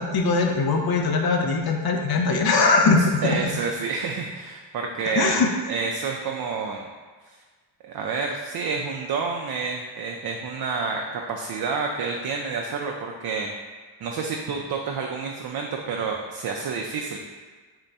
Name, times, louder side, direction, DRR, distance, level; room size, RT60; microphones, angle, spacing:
voice 1, 0.0-3.5 5.1-5.5, left 4 dB, 50° left, 3 dB, 0.7 m, -21 dB
voice 2, 3.2-6.9 7.3-7.4 7.8-13.5 14.0-17.2, right 4 dB, 50° right, 1 dB, 0.5 m, -29 dB
3.7 x 2.1 x 4.0 m, 1.4 s
supercardioid pair, 55°, 48 cm